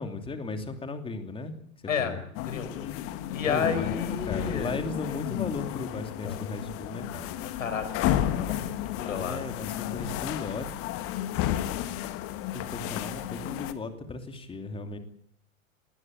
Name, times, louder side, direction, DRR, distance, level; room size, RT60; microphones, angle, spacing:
voice 1, 0.0-1.5 2.0-2.2 3.4-7.3 8.9-10.7 12.5-15.0, left 3 dB, 15° left, 7 dB, 2.8 m, -36 dB
sound 1, 2.3-13.7, left 12 dB, 30° left, 1.7 m, -32 dB
voice 2, 2.4-2.9 3.3-4.8 6.2-6.6 7.6-9.4, left 6 dB, 65° left, 10 dB, 5.2 m, -31 dB
19.5 x 19.0 x 9.1 m, 0.67 s
figure-of-eight pair, 100°, 42 cm